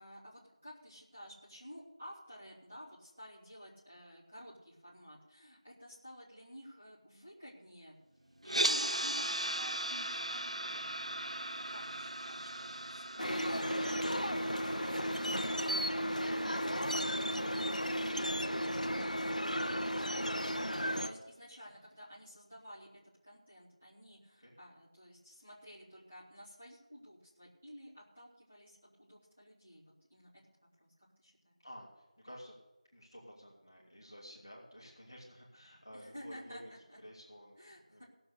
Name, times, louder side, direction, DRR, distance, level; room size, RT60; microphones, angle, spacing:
voice 1, 0.0-7.9 8.4-11.0 11.5-14.2 21.0-22.9 23.2-29.8 30.1-30.3 30.8-30.9 31.2-31.6 35.9-37.0 37.6-38.0, equal, 10° right, -11 dB, 1.7 m, -53 dB
sound 1, 8.4-18.6, right 1 dB, 60° right, 0.4 m, -39 dB
sound 2, 13.2-21.1, equal, 85° left, 0.9 m, -34 dB
voice 2, 31.6-32.5 32.9-36.7 37.0-38.0, equal, 10° left, -14 dB, 1.6 m, -54 dB
17.5 x 6.9 x 6.7 m, 1.0 s
figure-of-eight pair, 180°, 4 cm